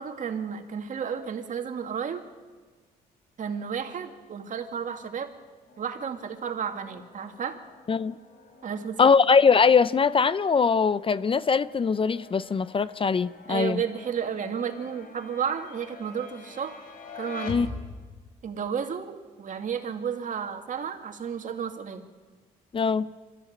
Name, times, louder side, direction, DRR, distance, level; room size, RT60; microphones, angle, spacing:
voice 1, 0.0-2.2 3.4-5.3 5.8-7.6 8.6-9.1 13.5-16.8 17.2-17.6 18.4-22.0, right 7 dB, 50° right, 6 dB, 2.4 m, -32 dB
sound 1, 5.7-18.3, left 4 dB, 60° left, 4.0 m, -46 dB
voice 2, 9.0-13.8 17.5-17.7 22.7-23.1, left 5 dB, 35° left, 17 dB, 0.6 m, -22 dB
23.5 x 14.5 x 8.8 m, 1.4 s
cardioid pair, 80°, 17 cm